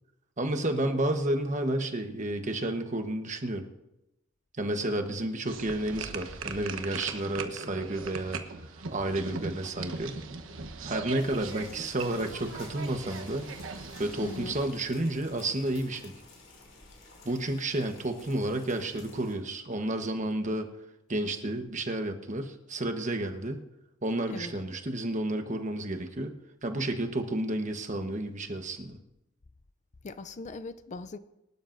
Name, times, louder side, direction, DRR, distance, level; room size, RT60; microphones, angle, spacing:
voice 1, 0.4-3.6 4.6-8.4 8.9-10.2 10.8-13.5 14.0-16.1 17.2-20.7 21.1-23.6 24.0-26.4 26.6-29.0, right 1 dB, 40° right, 1.2 m, -31 dB
sound 1, 5.5-14.7, right 4 dB, 80° right, 1.1 m, -39 dB
sound 2, 11.1-19.3, left 2 dB, 70° left, 5.2 m, -52 dB
voice 2, 14.2-14.5 24.3-24.5 30.0-31.2, left 3 dB, 35° left, 0.5 m, -39 dB
24.5 x 12.0 x 2.6 m
head